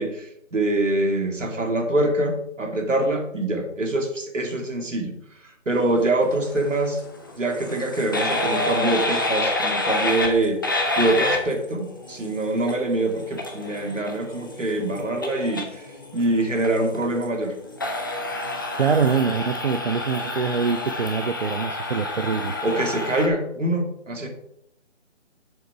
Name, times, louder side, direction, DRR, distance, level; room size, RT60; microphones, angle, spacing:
voice 1, 0.0-5.1 5.7-7.0 7.4-15.9 16.1-17.5 22.6-24.3, right 1 dB, 80° right, 3 dB, 2.4 m, -24 dB
sound 1, 6.3-23.3, left 2 dB, 15° left, 0.6 m, -29 dB
voice 2, 18.7-22.5, right 5 dB, 50° right, 10 dB, 0.5 m, -24 dB
7.0 x 6.7 x 4.8 m, 0.76 s
figure-of-eight pair, 155°, 37 cm